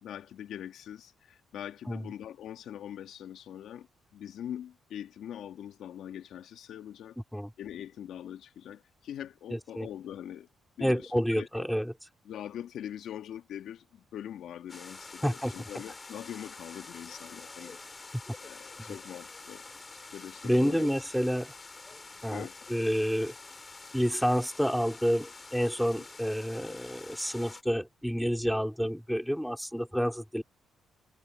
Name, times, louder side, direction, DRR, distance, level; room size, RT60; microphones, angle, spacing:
voice 1, 0.0-7.2 7.6-10.5 10.8-11.7 12.2-17.8 18.4-19.6 20.1-20.9 22.3-22.5, left 10 dB, 75° left, 2.4 m, -42 dB
voice 2, 9.5-9.9 10.8-11.9 15.2-15.5 18.9-19.0 20.4-21.5 22.2-23.3 23.9-30.4, equal, ahead, 4.3 m, -29 dB
sound 1, 14.7-27.6, left 3 dB, 25° left, 5.8 m, -47 dB
cardioid pair, 90°, 0 cm